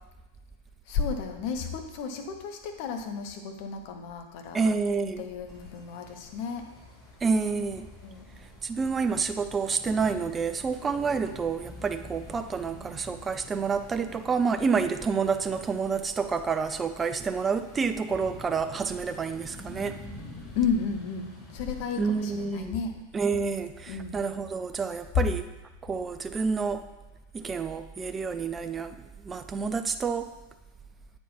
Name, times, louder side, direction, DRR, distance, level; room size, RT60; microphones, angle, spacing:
voice 1, 0.9-4.6 5.2-6.7 7.5-7.7 8.0-8.2 20.5-23.0 23.9-24.2 25.1-25.3, left 6 dB, 45° left, 5 dB, 0.9 m, -32 dB
voice 2, 4.5-5.2 7.2-7.9 8.6-20.0 22.0-22.8 23.1-25.5 25.8-26.9 27.3-29.0 29.2-30.3, right 5 dB, 20° right, 10 dB, 0.4 m, -28 dB
sound 1, 5.5-22.5, left 2 dB, 15° left, 1.6 m, -48 dB
8.2 x 4.5 x 4.4 m, 1.1 s
figure-of-eight pair, 90°, 0 cm